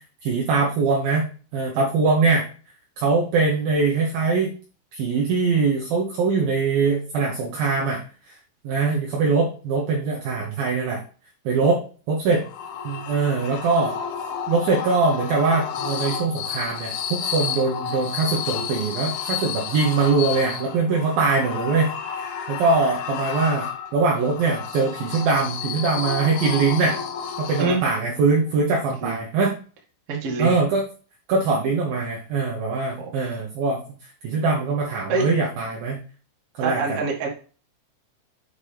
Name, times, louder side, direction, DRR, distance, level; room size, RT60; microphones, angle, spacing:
voice 1, 0.2-2.5 3.0-4.5 4.9-8.0 8.6-11.0 11.5-12.4 12.8-13.9 14.5-27.0 27.4-29.5 30.4-30.8 31.3-33.8 34.2-36.0 36.6-37.0, right 4 dB, 85° right, -1 dB, 2.0 m, -22 dB
sound 1, 12.3-28.1, left 7 dB, 75° left, 3.0 m, -31 dB
voice 2, 30.1-30.6 33.0-33.4 35.1-35.3 36.6-37.3, right 3 dB, 60° right, -1 dB, 1.5 m, -25 dB
8.1 x 5.6 x 3.4 m, 0.38 s
omnidirectional pair, 5.8 m